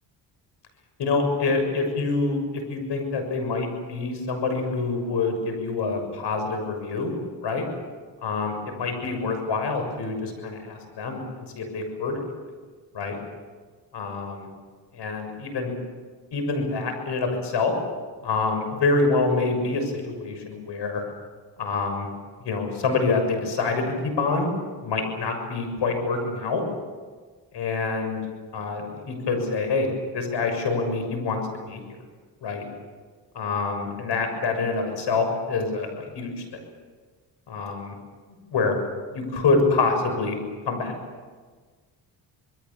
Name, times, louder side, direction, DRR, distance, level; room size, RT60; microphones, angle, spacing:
voice 1, 1.0-7.1 7.4-7.6 8.2-12.2 12.9-13.2 13.9-14.5 14.9-15.7 16.3-17.7 18.2-21.0 21.6-22.1 22.4-24.5 24.8-26.6 27.5-28.2 28.5-31.4 31.7-31.8 32.4-32.6 33.3-35.9 36.1-36.4 37.5-37.9 38.5-38.8 39.1-40.4 40.7-41.0, left 3 dB, 70° left, 5 dB, 6.8 m, -26 dB
27.5 x 21.5 x 7.2 m, 1.5 s
cardioid pair, 85°, 43 cm